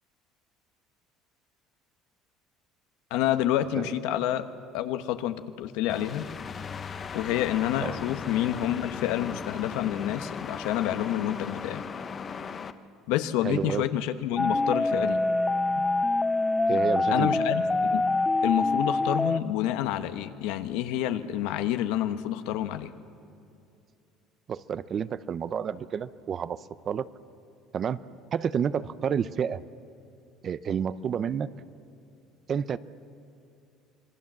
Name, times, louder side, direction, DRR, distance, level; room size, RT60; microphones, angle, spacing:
voice 1, 3.1-4.5 4.7-6.3 7.1-11.8 13.1-15.2 17.1-18.1 18.4-22.9, left 12 dB, 85° left, 9 dB, 1.0 m, -28 dB
sound 1, 5.9-12.7, left 6 dB, 30° left, 0.9 m, -37 dB
voice 2, 13.4-13.8 16.7-17.4 24.5-26.6 26.9-27.1 27.7-28.0 28.3-29.6 30.4-31.5 32.5-32.8, right 7 dB, 40° right, 15 dB, 0.6 m, -29 dB
sound 2, 14.4-19.4, left 2 dB, 15° left, 0.5 m, -25 dB
26.0 x 21.0 x 7.4 m, 2.5 s
cardioid pair, 125°, 0 cm